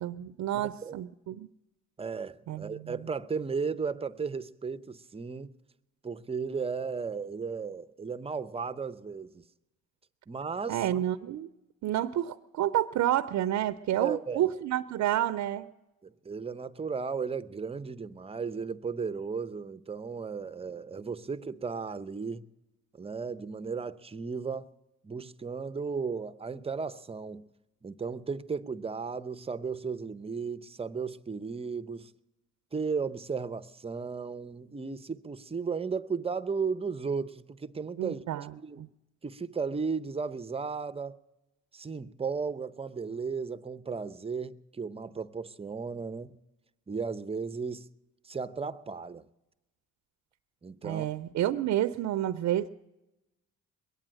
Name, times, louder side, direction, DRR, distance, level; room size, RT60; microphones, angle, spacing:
voice 1, 0.0-1.5 2.5-2.9 10.7-11.5 11.8-15.7 38.0-38.5 38.8-38.9 50.8-52.7, right 12 dB, 70° right, 0.6 m, -29 dB
voice 2, 0.5-1.0 2.0-5.5 6.0-9.4 10.3-10.9 14.0-14.5 16.0-22.5 23.0-24.7 25.0-27.5 27.8-32.1 32.7-38.2 38.6-38.9 39.2-41.2 41.7-46.4 46.9-47.9 48.2-49.3 50.6-51.1, right 5 dB, 20° right, 0.6 m, -35 dB
21.5 x 8.9 x 7.5 m
cardioid pair, 90°, 30 cm